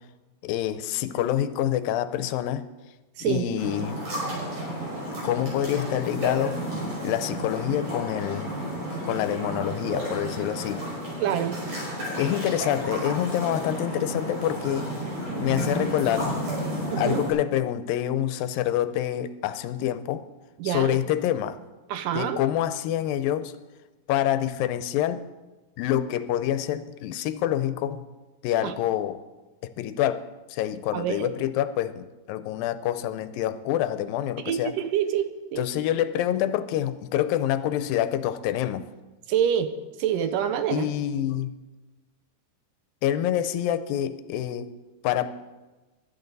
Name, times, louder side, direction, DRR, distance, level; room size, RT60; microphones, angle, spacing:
voice 1, 0.4-2.7 3.2-4.0 5.2-6.6 7.0-8.5 9.0-10.8 12.2-14.9 15.4-16.3 17.0-20.2 20.6-21.6 22.1-23.5 24.1-25.2 25.8-28.0 28.4-29.2 29.8-30.2 30.5-34.7 35.6-38.9 40.7-41.5 43.0-44.7 45.0-45.3, left 11 dB, 85° left, 2.5 m, -26 dB
sound 1, 3.6-17.3, right 1 dB, 60° right, 7.6 m, -32 dB
voice 2, 11.2-11.6 16.9-17.2 20.6-21.0 21.9-22.4 28.6-28.7 30.9-31.3 34.4-35.7 39.3-39.7 40.0-40.9, right 9 dB, 80° right, 2.4 m, -26 dB
22.5 x 11.5 x 4.0 m
omnidirectional pair, 4.0 m